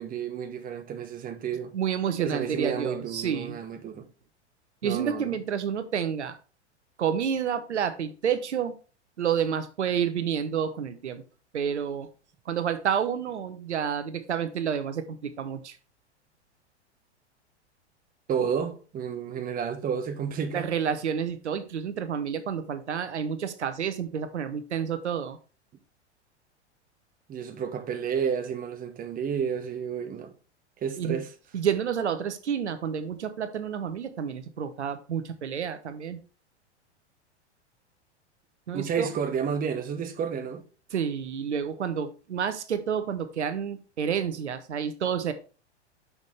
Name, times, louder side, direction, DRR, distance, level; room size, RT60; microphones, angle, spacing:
voice 1, 0.0-1.7 2.2-4.1 4.8-5.4 18.3-20.7 27.3-30.3 30.8-31.3 38.7-40.6, right 7 dB, 25° right, 1.1 m, -31 dB
voice 2, 1.7-3.6 4.8-6.4 7.0-8.7 9.2-11.2 11.5-12.1 12.5-15.8 20.5-25.4 31.0-31.2 31.5-36.2 38.7-39.1 40.9-45.3, right 8 dB, 75° right, 0.9 m, -29 dB
6.1 x 5.7 x 3.2 m
figure-of-eight pair, 95°, 35 cm